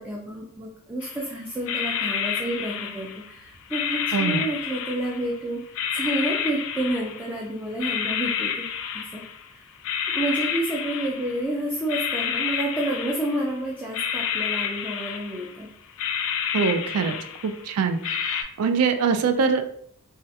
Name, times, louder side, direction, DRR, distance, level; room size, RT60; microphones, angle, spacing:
voice 1, 0.0-5.6 5.9-8.7 8.9-9.2 9.5-9.6 10.1-15.7, right 1 dB, 10° right, -4 dB, 0.4 m, -29 dB
sound 1, 1.0-1.2 1.7-3.3 3.7-5.4 5.7-7.4 7.8-9.5 9.8-11.5 11.9-13.5 13.9-15.6 15.9-17.7 18.0-18.4, left 8 dB, 65° left, 0.3 m, -29 dB
voice 2, 4.1-4.4 16.5-17.2 17.4-19.6, right 5 dB, 75° right, 7 dB, 0.4 m, -23 dB
3.2 x 2.3 x 2.7 m, 0.66 s
head